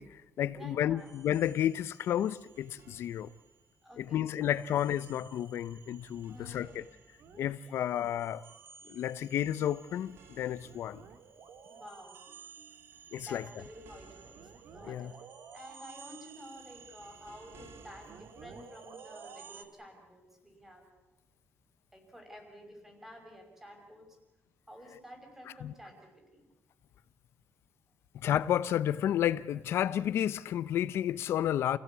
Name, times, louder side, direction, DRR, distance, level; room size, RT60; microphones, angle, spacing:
voice 1, 0.0-3.3 4.0-6.8 7.4-8.4 8.9-11.0 13.1-13.4 14.9-15.1 25.6-25.7 28.1-31.8, left 11 dB, 75° left, 0.8 m, -31 dB
voice 2, 0.5-1.1 3.8-4.8 6.3-6.9 7.6-8.0 8.8-8.9 11.7-12.2 13.2-15.1 15.5-20.9 21.9-24.2 24.7-26.5, equal, 10° right, 5.9 m, -51 dB
sound 1, 1.0-3.7 4.0-19.6, right 6 dB, 70° right, 2.5 m, -54 dB
29.0 x 16.5 x 8.4 m
cardioid pair, 165°, 4 cm